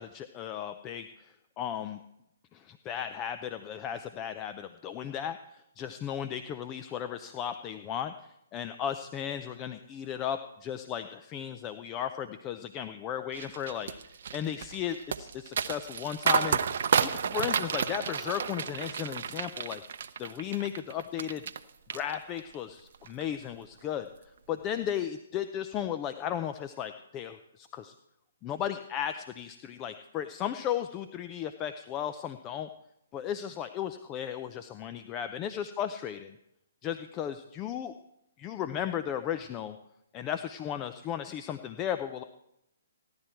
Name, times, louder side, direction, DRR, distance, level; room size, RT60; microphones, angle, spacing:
voice 1, 0.0-2.0 2.5-16.6 16.9-19.8 20.2-21.4 21.9-24.1 24.5-27.9 28.4-32.7 33.1-36.3 36.8-37.9 38.4-39.8 40.1-42.2, left 9 dB, 25° left, 9 dB, 0.5 m, -35 dB
sound 1, 13.3-21.6 21.9-22.5 22.9-23.2, right 7 dB, 60° right, 0.7 m, -31 dB
16.0 x 11.5 x 4.5 m, 0.83 s
hypercardioid pair, 140°, 0 cm